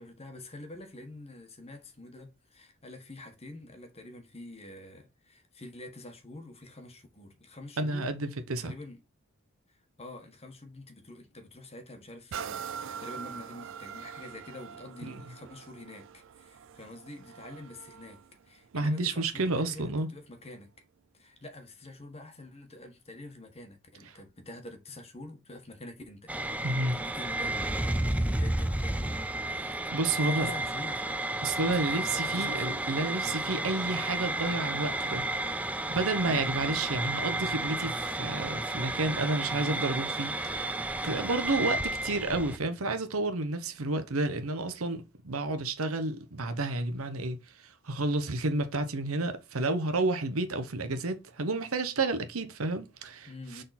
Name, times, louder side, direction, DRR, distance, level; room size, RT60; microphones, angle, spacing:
voice 1, 0.0-8.1 8.5-9.0 9.7-20.7 21.1-26.7 26.9-33.5 33.9-34.1 53.3-53.6, left 2 dB, 30° left, 1.4 m, -47 dB
voice 2, 7.8-8.7 15.0-15.2 18.7-20.1 26.6-27.0 29.9-30.5 31.4-35.2 35.6-53.6, right 2 dB, 85° right, 1.0 m, -31 dB
sound 1, 12.3-19.9 20.5-20.6, right 7 dB, 65° right, 0.4 m, -44 dB
sound 2, 26.3-42.6, right 2 dB, 5° right, 0.5 m, -32 dB
6.5 x 3.9 x 4.2 m
head